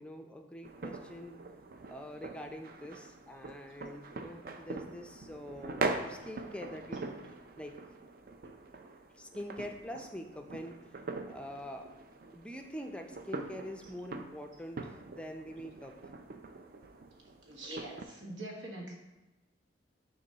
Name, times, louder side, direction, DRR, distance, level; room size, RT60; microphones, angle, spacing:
voice 1, 0.0-1.4 1.9-7.9 9.1-11.9 12.3-15.9, equal, 5° left, 4 dB, 0.4 m, -45 dB
sound 1, 0.6-18.0, right 3 dB, 50° right, 0.4 m, -43 dB
voice 2, 17.4-18.9, right 1 dB, 85° right, -1 dB, 1.4 m, -43 dB
6.7 x 3.1 x 5.4 m, 1.1 s
head